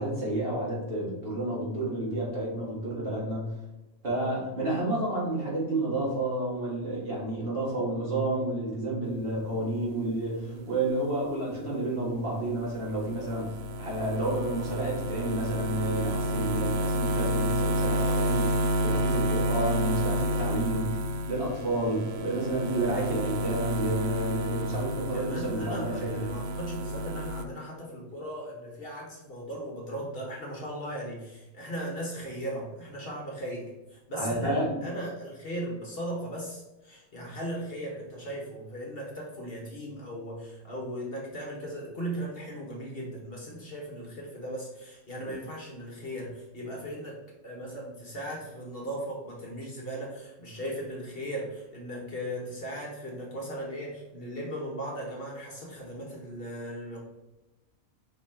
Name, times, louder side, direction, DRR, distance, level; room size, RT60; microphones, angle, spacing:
voice 1, 0.0-3.4 4.0-18.5 18.8-20.9 21.3-26.3 34.1-34.8 45.2-45.3, right 1 dB, 40° right, -4 dB, 2.0 m, -30 dB
voice 2, 2.9-3.3 10.4-10.8 17.9-19.0 20.0-20.3 25.1-47.2 47.4-57.0, right 1 dB, 45° left, -2 dB, 1.5 m, -38 dB
sound 1, 12.6-27.4, right 1 dB, 60° right, 0.7 m, -30 dB
5.4 x 4.3 x 4.3 m, 1.0 s
omnidirectional pair, 1.5 m